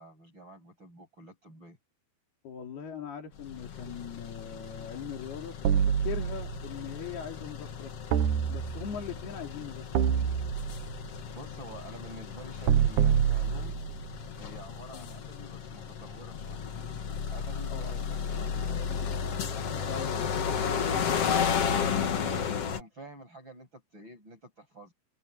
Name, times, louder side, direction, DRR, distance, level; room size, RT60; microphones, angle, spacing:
voice 1, 0.0-1.8 11.3-13.8 14.4-16.7 17.3-18.7 21.9-24.9, right 2 dB, 30° right, 8.8 m, -48 dB
voice 2, 2.4-8.2 8.5-9.9 14.9-15.2 17.7-18.0 19.9-20.5, left 7 dB, 85° left, 5.5 m, -40 dB
sound 1, 3.4-22.8, left 7 dB, 50° left, 2.2 m, -34 dB
sound 2, 5.6-6.7 8.1-9.1 9.9-11.0 12.7-14.1, right 8 dB, 65° right, 2.4 m, -26 dB
omnidirectional pair, 4.4 m